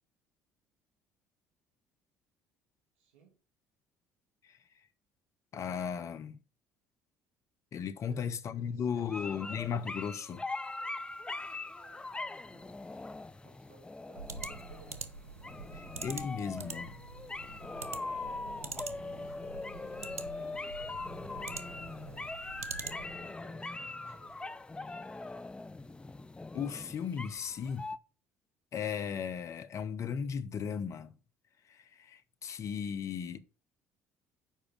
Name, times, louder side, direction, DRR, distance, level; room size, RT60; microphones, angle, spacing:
voice 1, 3.0-3.4 8.0-9.4 11.8-12.8 13.2-15.1 17.8-22.3 23.0-24.6, right 6 dB, 70° right, 4.5 m, -61 dB
voice 2, 5.5-6.4 7.7-10.4 15.7-17.0 26.5-27.9 28.7-31.1 31.7-33.4, left 7 dB, 45° left, 0.9 m, -36 dB
sound 1, 9.0-28.0, left 3 dB, 15° left, 0.5 m, -42 dB
sound 2, 14.1-23.3, right 4 dB, 85° right, 0.6 m, -45 dB
7.5 x 4.9 x 7.0 m
figure-of-eight pair, 55°, 7 cm